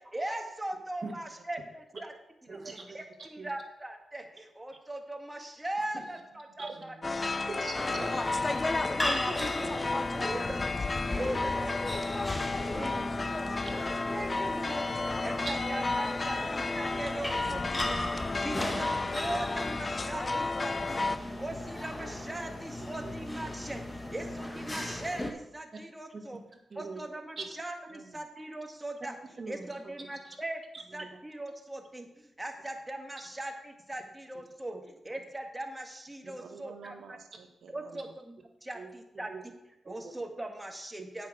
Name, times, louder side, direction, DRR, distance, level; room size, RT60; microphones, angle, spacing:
voice 1, 0.1-2.1 2.5-2.6 2.9-6.9 9.6-9.7 10.1-12.4 12.7-13.6 14.1-14.9 15.2-18.0 18.4-21.1 21.4-26.4 26.7-29.1 29.5-30.6 30.9-34.8 35.0-36.9 37.7-38.3 38.6-39.3 39.9-41.3, right 1 dB, 15° right, 4 dB, 1.7 m, -40 dB
voice 2, 2.5-3.5 5.9-6.0 6.6-6.8 7.5-8.4 8.7-9.8 13.9-14.1 15.4-15.8 16.9-17.0 18.5-18.6 19.3-19.4 23.0-23.1 26.7-27.0 27.4-27.5 29.4-29.7 30.0-30.1 30.7-31.1 34.7-34.8 36.2-36.3 38.7-39.4 39.8-40.1 41.0-41.1, right 3 dB, 50° right, 3 dB, 1.9 m, -43 dB
sound 1, 7.0-21.2, left 3 dB, 35° left, 0.5 m, -32 dB
sound 2, 7.7-25.3, left 1 dB, 20° left, 1.3 m, -37 dB
voice 3, 11.8-13.5 27.9-28.2 36.4-38.1, right 5 dB, 80° right, 7 dB, 1.0 m, -52 dB
8.3 x 5.9 x 6.4 m, 0.89 s
supercardioid pair, 50°, 0 cm